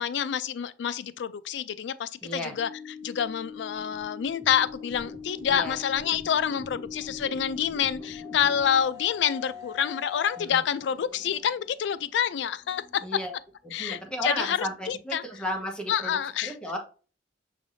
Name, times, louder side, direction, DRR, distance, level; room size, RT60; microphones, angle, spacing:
voice 1, 0.0-2.7 3.0-13.0 13.7-15.2 15.9-16.5, left 8 dB, 70° left, 0.3 m, -28 dB
voice 2, 2.2-2.5 5.5-5.8 10.4-10.6 13.0-13.3 13.8-16.8, equal, 5° left, 1.1 m, -34 dB
sound 1, 2.6-8.8, left 4 dB, 20° left, 0.8 m, -41 dB
sound 2, 7.6-13.0, left 8 dB, 20° right, 2.3 m, -47 dB
6.1 x 3.3 x 2.6 m
head